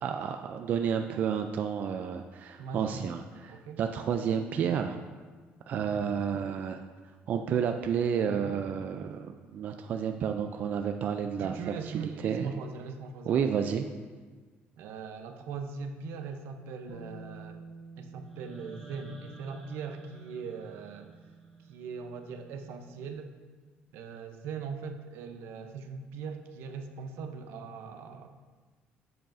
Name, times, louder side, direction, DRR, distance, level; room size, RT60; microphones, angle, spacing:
voice 1, 0.0-5.0 5.7-6.8 7.3-12.5 13.3-13.9, right 7 dB, 45° right, 6 dB, 0.3 m, -31 dB
voice 2, 2.6-2.9 3.5-3.8 11.4-13.6 14.8-17.6 18.0-21.2 21.7-23.3 23.9-28.3, right 5 dB, 75° right, 6 dB, 0.7 m, -40 dB
Bass guitar, 16.9-23.1, right 4 dB, 75° left, 1.4 m, -50 dB
sound 1, 18.2-22.3, right 1 dB, ahead, 1.1 m, -54 dB
8.8 x 7.9 x 2.6 m, 1.4 s
cardioid pair, 165°, 4 cm